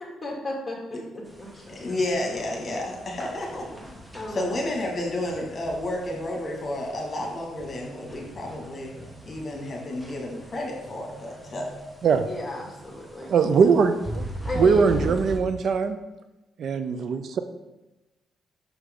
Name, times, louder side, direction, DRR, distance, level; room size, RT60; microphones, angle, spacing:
voice 1, 0.0-1.6 3.7-3.8 4.1-4.6 12.3-13.3 14.4-15.1, left 1 dB, 15° left, -3 dB, 2.4 m, -34 dB
sound 1, 1.2-15.4, equal, 10° right, 1.2 m, -41 dB
voice 2, 1.7-3.7 4.3-8.9 9.3-11.7, left 1 dB, 35° left, 0 dB, 2.2 m, -31 dB
voice 3, 13.3-14.2 14.6-16.0 16.6-17.4, right 5 dB, 60° right, 9 dB, 0.5 m, -21 dB
6.6 x 6.1 x 3.8 m, 1.0 s
cardioid pair, 90°, 0 cm